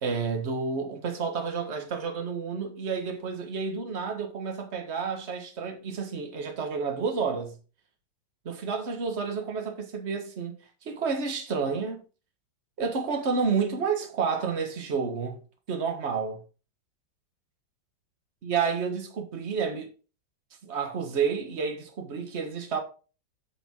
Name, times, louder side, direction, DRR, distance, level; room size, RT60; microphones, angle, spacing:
voice 1, 0.0-7.6 8.4-12.0 12.8-15.4 15.7-16.4 18.4-19.9 20.6-22.8, right 5 dB, 35° right, 1.5 m, -30 dB
8.4 x 5.3 x 4.5 m
omnidirectional pair, 2.2 m